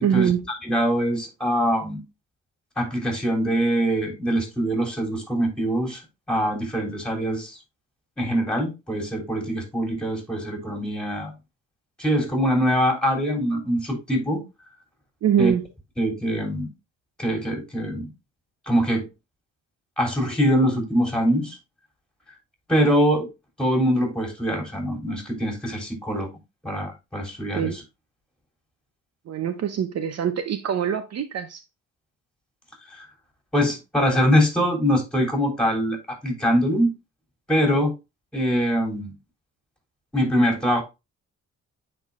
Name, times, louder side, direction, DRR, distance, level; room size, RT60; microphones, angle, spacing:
voice 1, 0.0-0.4 15.2-15.6 27.5-27.8 29.3-31.6, right 8 dB, 55° right, 0.7 m, -23 dB
voice 2, 0.6-2.0 2.8-6.0 6.3-7.6 8.2-11.3 12.0-14.4 15.4-15.5 16.0-16.7 17.2-18.1 18.7-19.1 20.0-21.6 22.7-23.3 23.6-26.3 26.6-27.8 32.9-33.1 33.5-36.9 37.5-37.9 38.3-39.1 40.1-40.8, equal, 5° left, 3.5 m, -23 dB
9.5 x 4.6 x 2.4 m
cardioid pair, 90°, 30 cm